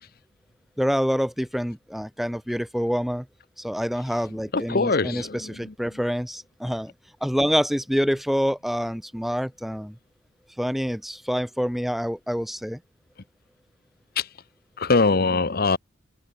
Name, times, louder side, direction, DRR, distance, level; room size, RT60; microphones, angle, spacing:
voice 1, 0.8-3.3 3.6-6.9 7.2-9.9 10.6-12.8, equal, ahead, 2.9 m, -26 dB
voice 2, 4.5-5.3 14.2-14.3 14.8-15.8, left 3 dB, 45° left, 0.8 m, -22 dB
head